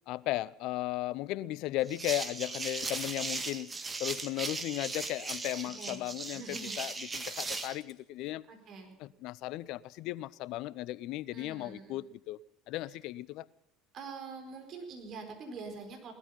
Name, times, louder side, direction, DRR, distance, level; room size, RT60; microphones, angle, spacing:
voice 1, 0.1-3.7 4.0-8.4 9.0-12.4 12.7-13.5, left 16 dB, 60° left, 0.6 m, -36 dB
sound 1, 1.9-7.8, right 3 dB, 25° right, 1.9 m, -38 dB
sound 2, 3.0-3.4 5.3-6.0 6.7-6.9 7.3-8.2 9.4-9.5, left 7 dB, 40° left, 2.7 m, -53 dB
voice 2, 5.6-6.7 8.5-9.0 11.3-12.0 12.9-13.0 13.9-16.1, right 4 dB, 50° right, 4.4 m, -45 dB
18.5 x 13.0 x 5.6 m
hypercardioid pair, 70°, 0 cm